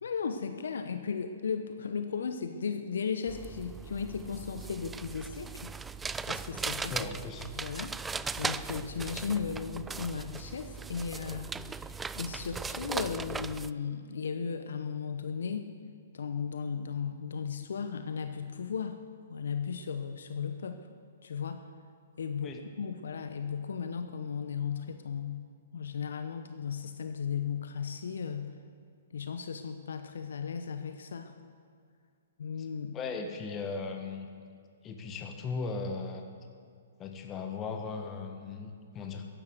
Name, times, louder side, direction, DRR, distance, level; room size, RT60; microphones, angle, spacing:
voice 1, 0.0-5.8 6.3-7.1 7.5-11.6 12.1-15.7 16.1-19.0 19.3-20.8 21.2-21.7 22.2-25.5 25.7-28.5 29.1-31.3 32.4-33.0, left 6 dB, 65° left, 8 dB, 0.9 m, -36 dB
sound 1, 3.3-13.7, right 5 dB, 10° right, 0.3 m, -38 dB
voice 2, 6.9-7.4 22.4-22.6 32.9-34.3 34.8-36.2 37.0-39.3, left 4 dB, 20° left, 4 dB, 1.5 m, -37 dB
14.0 x 11.0 x 8.1 m, 2.2 s
figure-of-eight pair, 120°, 0 cm